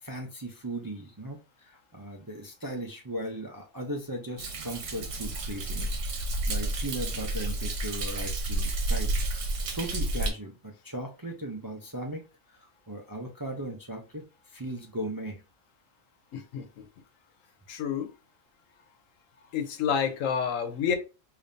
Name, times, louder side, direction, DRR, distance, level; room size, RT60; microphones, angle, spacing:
voice 1, 0.0-9.2 9.7-15.4, right 1 dB, 30° right, 0.4 m, -38 dB
Thunder, 4.4-10.3, right 1 dB, 70° right, 1.2 m, -30 dB
voice 2, 16.3-16.6 17.7-18.1 19.5-21.0, left 7 dB, 85° left, 1.1 m, -28 dB
5.1 x 2.7 x 2.6 m
omnidirectional pair, 1.3 m